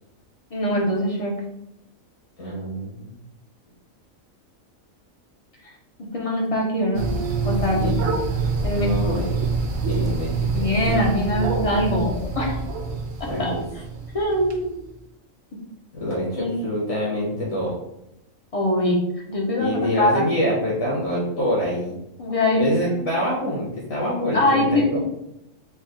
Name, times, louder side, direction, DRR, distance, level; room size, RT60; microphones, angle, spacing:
voice 1, 0.5-1.3 6.1-7.1 7.4-8.0 8.6-8.9 10.5-12.6 13.4-13.5 14.1-14.9 16.3-16.5 18.5-19.0 19.3-20.2 22.2-23.0 24.3-25.0, left 1 dB, 55° left, -2 dB, 0.4 m, -23 dB
voice 2, 2.4-3.1 7.8-7.9 8.7-9.5 9.8-10.7 13.3-13.6 15.9-17.7 19.6-22.0 22.5-25.0, equal, 75° left, -6 dB, 1.6 m, -26 dB
sound 1, 6.9-14.6, right 4 dB, 60° right, 0.8 m, -26 dB
4.1 x 2.0 x 3.7 m, 0.86 s
omnidirectional pair, 1.4 m